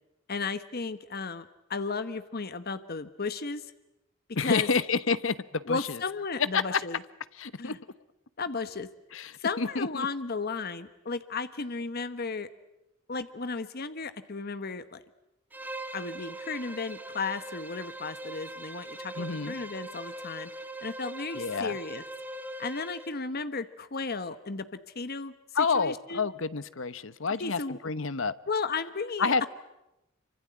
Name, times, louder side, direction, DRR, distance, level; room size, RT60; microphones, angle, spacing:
voice 1, 0.3-3.7 4.4-4.7 5.7-7.0 7.6-7.8 8.4-8.9 9.4-12.5 13.1-15.0 15.9-20.5 20.8-22.0 22.6-24.7 24.9-25.3 25.7-26.3 27.4-27.8 28.5-29.5, left 4 dB, 50° left, 12 dB, 1.1 m, -34 dB
voice 2, 4.4-6.0 6.4-6.8 7.4-7.8 9.1-10.1 19.2-19.5 21.3-21.8 25.5-28.4 29.2-29.5, left 4 dB, 75° left, 15 dB, 1.0 m, -29 dB
Bowed string instrument, 15.5-23.2, right 1 dB, 10° right, 1.6 m, -41 dB
26.5 x 25.0 x 8.8 m, 0.91 s
head